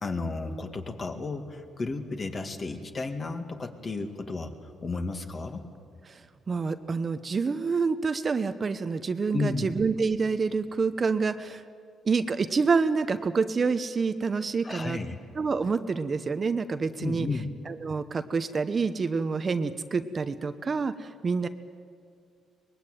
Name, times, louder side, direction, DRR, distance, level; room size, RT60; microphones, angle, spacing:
voice 1, 0.0-5.6 9.3-9.7 14.6-15.2 17.0-17.5, left 3 dB, 35° left, 5 dB, 2.3 m, -33 dB
voice 2, 6.5-11.6 12.1-15.0 15.3-17.3 17.7-21.5, right 4 dB, 40° right, 10 dB, 0.9 m, -27 dB
23.5 x 20.5 x 9.2 m, 2.3 s
cardioid pair, 90°, 0 cm